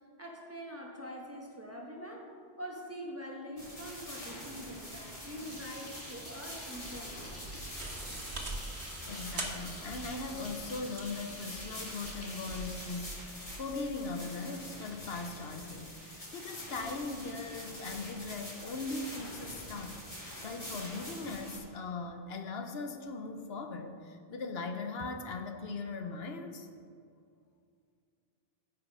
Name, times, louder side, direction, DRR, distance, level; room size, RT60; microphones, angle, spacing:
voice 1, 0.2-2.3 2.6-7.3, equal, 15° right, -2 dB, 1.5 m, -44 dB
sound 1, 3.6-21.6, equal, 30° left, 3.0 m, -45 dB
sound 2, 5.1-13.9, left 1 dB, 15° left, 1.3 m, -50 dB
sound 3, 6.7-13.8, right 2 dB, 85° right, 1.8 m, -44 dB
voice 2, 9.1-20.0 20.4-26.7, left 3 dB, 70° left, 6 dB, 1.0 m, -39 dB
15.0 x 5.6 x 5.4 m, 2.3 s
omnidirectional pair, 1.1 m